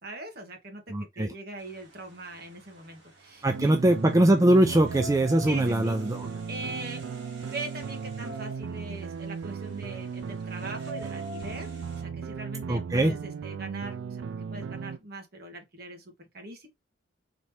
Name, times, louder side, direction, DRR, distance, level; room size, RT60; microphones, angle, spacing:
voice 1, 0.0-0.8 1.1-3.7 5.5-5.9 6.5-7.0 7.4-11.7 12.0-14.2 14.5-16.7, right 2 dB, 55° right, 1.5 m, -41 dB
voice 2, 0.9-1.3 3.4-6.3 12.7-13.1, right 1 dB, 15° right, 0.4 m, -22 dB
sound 1, 1.6-12.0, right 2 dB, 70° right, 2.6 m, -46 dB
sound 2, 3.5-15.0, right 6 dB, 90° right, 0.3 m, -37 dB
4.2 x 2.9 x 3.2 m
head